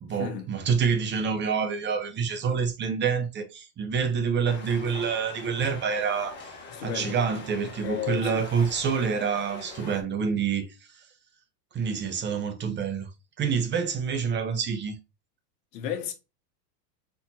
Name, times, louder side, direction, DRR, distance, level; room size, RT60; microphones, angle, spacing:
voice 1, 0.0-6.4 6.8-10.7 11.7-13.1 13.4-15.0, right 6 dB, 25° right, 0.8 m, -27 dB
sound 1, 4.4-10.0, left 4 dB, 20° left, 1.7 m, -43 dB
voice 2, 6.7-7.2 7.8-8.4 15.7-16.1, left 9 dB, 80° left, 1.3 m, -33 dB
4.5 x 2.8 x 4.0 m
supercardioid pair, 135°, 49 cm